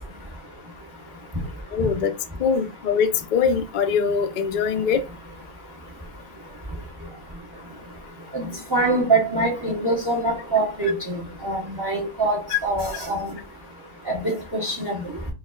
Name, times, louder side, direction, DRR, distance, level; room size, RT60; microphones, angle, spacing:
voice 1, 1.7-2.1 2.4-5.0 12.5-12.6, left 6 dB, 75° left, 0.4 m, -22 dB
voice 2, 8.3-11.2 11.4-13.3 14.1-15.0, right 2 dB, 20° right, 0.8 m, -24 dB
4.9 x 2.4 x 2.3 m
omnidirectional pair, 1.5 m